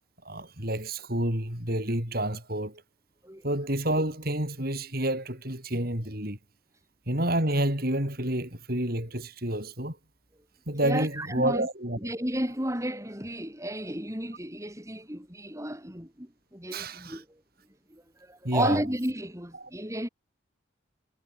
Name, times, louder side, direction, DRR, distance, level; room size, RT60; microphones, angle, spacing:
voice 1, 0.3-2.8 3.4-6.4 7.1-10.0 10.7-12.0 16.7-17.2 18.4-18.8 19.6-19.7, right 1 dB, 50° right, 7.0 m, -29 dB
voice 2, 10.8-11.7 12.0-17.2 17.9-20.1, right 1 dB, 15° right, 6.0 m, -33 dB
head